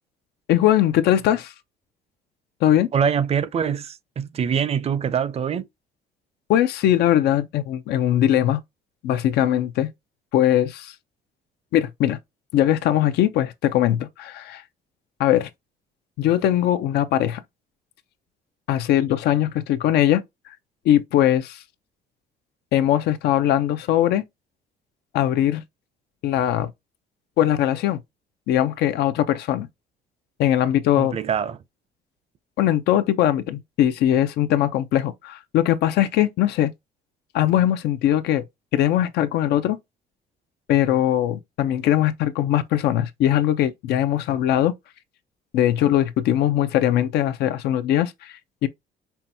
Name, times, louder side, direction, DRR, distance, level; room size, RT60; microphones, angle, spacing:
voice 1, 0.5-1.5 2.6-2.9 6.5-8.6 9.0-9.9 10.3-10.9 11.7-12.2 12.5-14.6 15.2-15.5 16.2-17.4 18.7-20.2 20.8-21.6 22.7-24.2 25.1-25.6 26.2-26.7 27.4-28.0 28.5-29.7 30.4-31.2 32.6-36.7 37.3-38.4 38.7-39.8 40.7-44.7 45.5-48.3 48.6-48.7, left 12 dB, 75° left, 0.5 m, -20 dB
voice 2, 2.9-5.7 31.0-31.6, right 7 dB, 35° right, 0.5 m, -24 dB
5.5 x 2.3 x 2.7 m
cardioid pair, 110°, 17 cm